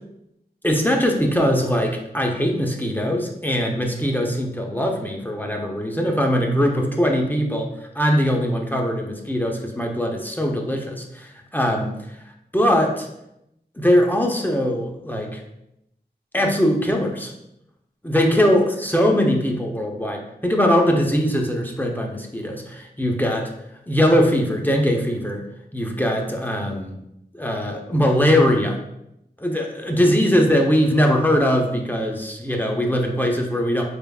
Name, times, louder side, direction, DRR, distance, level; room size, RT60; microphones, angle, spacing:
voice 1, 0.6-11.9 12.5-13.1 13.8-15.4 16.3-17.3 18.0-23.5 23.9-25.4 25.7-27.0 27.3-28.8 29.4-33.8, equal, 10° left, 1 dB, 0.7 m, -21 dB
4.5 x 3.5 x 2.3 m, 0.82 s
wide cardioid pair, 50°, 17 cm